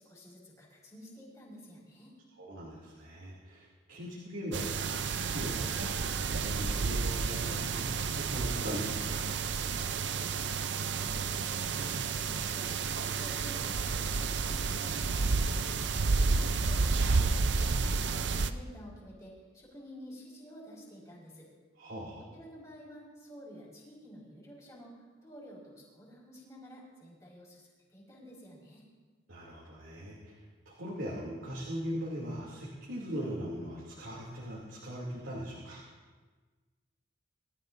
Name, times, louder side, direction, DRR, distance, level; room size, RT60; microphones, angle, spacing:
voice 1, 0.0-2.1 10.4-11.2 11.5-15.8 16.5-21.5 22.3-28.8, equal, 15° left, -5 dB, 5.0 m, -51 dB
voice 2, 2.4-9.3 21.8-22.2 29.3-35.8, equal, 85° right, -6 dB, 2.8 m, -40 dB
sound 1, 4.5-18.5, right 4 dB, 65° right, 0.6 m, -31 dB
23.5 x 13.5 x 2.7 m, 1.4 s
head